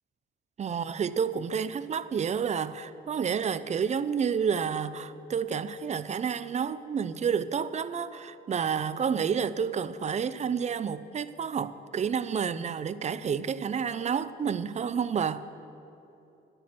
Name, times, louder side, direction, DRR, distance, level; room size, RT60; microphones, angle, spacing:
voice 1, 0.6-15.4, right 7 dB, 35° right, 0.5 m, -30 dB
11.0 x 8.9 x 7.6 m
cardioid pair, 90°, 20 cm